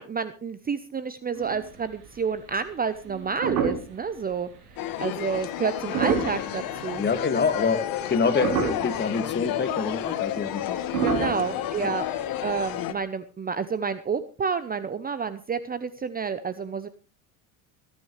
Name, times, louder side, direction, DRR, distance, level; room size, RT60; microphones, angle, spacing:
voice 1, 0.0-4.5 5.0-7.0 11.0-12.1 12.4-16.9, right 6 dB, 20° right, 13 dB, 0.8 m, -29 dB
sound 1, 1.4-2.1 2.5-2.6 3.0-4.1 4.6-4.7 5.7-7.2 7.6-8.1 8.4-9.1 9.5-9.6 9.8-10.0 10.8-12.4 12.7-12.8, right 7 dB, 85° right, 3.7 m, -29 dB
sound 2, 4.8-12.9, left 11 dB, 55° left, 1.8 m, -31 dB
voice 2, 7.0-10.8 11.2-11.3 11.8-11.9, left 5 dB, 25° left, 9 dB, 2.1 m, -26 dB
25.0 x 9.9 x 3.3 m, 0.34 s
supercardioid pair, 90°, 41 cm